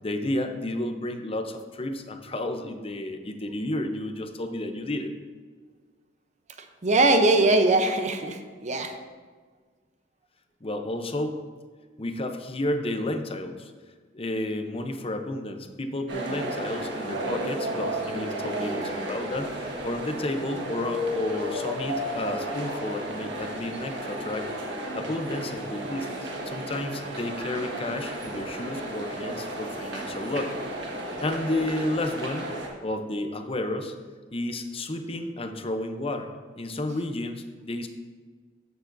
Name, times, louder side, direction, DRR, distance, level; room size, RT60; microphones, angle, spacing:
voice 1, 0.0-5.1 10.6-11.4 12.0-13.7 14.1-24.5 24.9-30.8 31.2-32.5 32.8-33.9 34.3-36.3 36.6-37.9, left 1 dB, 30° left, 6 dB, 0.7 m, -31 dB
voice 2, 6.8-8.9, right 2 dB, 40° right, 6 dB, 0.7 m, -21 dB
sound 1, 16.1-32.7, right 1 dB, 70° right, 1.5 m, -33 dB
13.0 x 6.8 x 2.6 m, 1.5 s
head